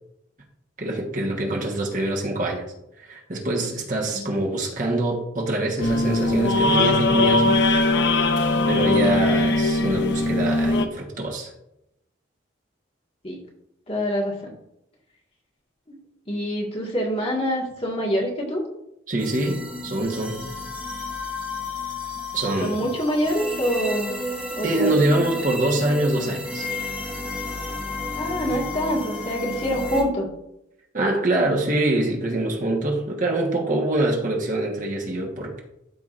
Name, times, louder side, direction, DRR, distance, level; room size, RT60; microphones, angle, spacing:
voice 1, 0.8-2.6 3.0-7.6 8.7-11.5 19.1-20.4 22.3-22.8 24.6-26.7 28.5-28.6 30.9-35.6, right 1 dB, 40° right, -1 dB, 1.3 m, -24 dB
voice 2, 4.1-4.5 13.2-13.4 13.9-14.5 15.9-16.0 16.3-18.6 22.6-24.1 24.6-24.9 28.2-30.3, equal, 30° left, -2 dB, 1.7 m, -26 dB
sound 1, 5.8-10.9, left 2 dB, 65° left, 0.7 m, -20 dB
sound 2, 19.2-30.0, left 2 dB, 5° right, 1.0 m, -32 dB
13.0 x 4.8 x 2.5 m, 0.83 s
head